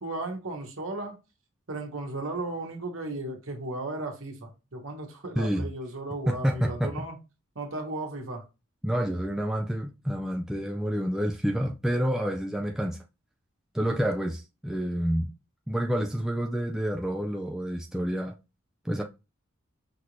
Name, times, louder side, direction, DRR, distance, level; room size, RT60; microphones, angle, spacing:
voice 1, 0.0-1.2 1.7-7.2 7.5-8.4, right 2 dB, 70° right, 1.4 m, -35 dB
voice 2, 6.3-7.1 8.8-13.0 13.7-15.3 15.7-18.3 18.8-19.0, equal, ahead, 0.4 m, -28 dB
5.8 x 2.7 x 3.1 m
head